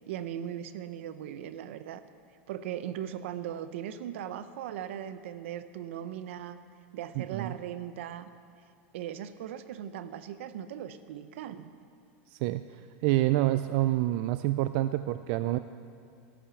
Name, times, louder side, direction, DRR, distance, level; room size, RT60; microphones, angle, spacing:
voice 1, 0.1-2.0 2.5-6.6 6.9-8.3 8.9-11.7, right 10 dB, 75° right, 12 dB, 0.7 m, -38 dB
voice 2, 7.2-7.5 12.3-12.6 13.0-15.6, right 15 dB, 55° right, 12 dB, 0.3 m, -27 dB
13.5 x 8.9 x 7.0 m, 2.4 s
supercardioid pair, 145°, 7 cm